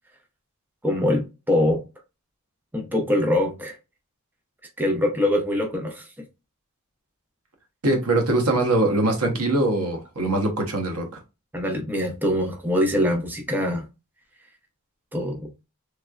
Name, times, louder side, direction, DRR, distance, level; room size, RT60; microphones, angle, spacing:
voice 1, 0.8-1.8 2.7-3.8 4.8-6.1 11.5-13.9 15.1-15.5, left 1 dB, 10° right, 0.6 m, -23 dB
voice 2, 7.8-11.0, right 2 dB, 80° right, 1.1 m, -22 dB
3.3 x 3.2 x 2.4 m
head